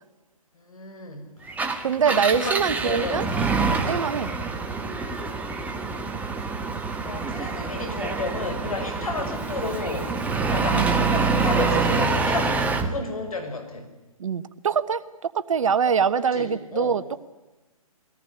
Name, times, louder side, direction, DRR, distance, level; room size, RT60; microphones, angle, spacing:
voice 1, 0.5-1.3 2.0-2.6 2.8-3.3 6.8-10.1 10.5-13.9 15.8-17.0, left 3 dB, 70° left, 6 dB, 6.0 m, -33 dB
Engine, 1.5-12.9, right 4 dB, 10° right, 1.5 m, -26 dB
voice 2, 1.8-3.2 3.9-4.3 10.7-11.0 14.2-17.2, right 6 dB, 60° right, 13 dB, 1.2 m, -24 dB
23.5 x 18.5 x 9.9 m, 1.1 s
figure-of-eight pair, 135°, 19 cm